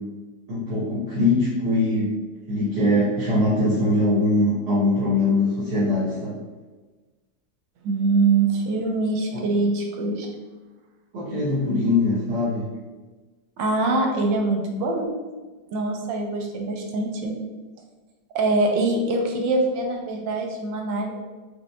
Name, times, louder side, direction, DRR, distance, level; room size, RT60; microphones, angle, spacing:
voice 1, 0.5-2.1 2.5-6.3 9.3-9.4 11.1-12.7, left 2 dB, 65° right, -13 dB, 2.1 m, -22 dB
voice 2, 7.8-10.3 13.6-15.2 15.7-17.3 18.3-21.1, right 3 dB, 85° right, 1 dB, 1.4 m, -23 dB
5.9 x 2.6 x 2.2 m, 1.3 s
omnidirectional pair, 1.9 m